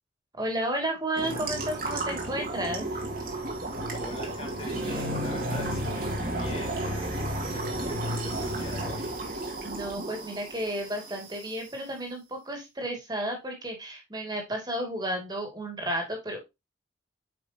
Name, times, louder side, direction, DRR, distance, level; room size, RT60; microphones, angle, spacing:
voice 1, 0.4-2.9 9.6-16.4, right 1 dB, 25° right, 2.5 m, -32 dB
sound 1, 1.2-11.6, right 1 dB, 50° right, 2.2 m, -32 dB
voice 2, 4.0-9.1, left 1 dB, 35° left, 2.5 m, -42 dB
8.6 x 5.6 x 2.9 m
head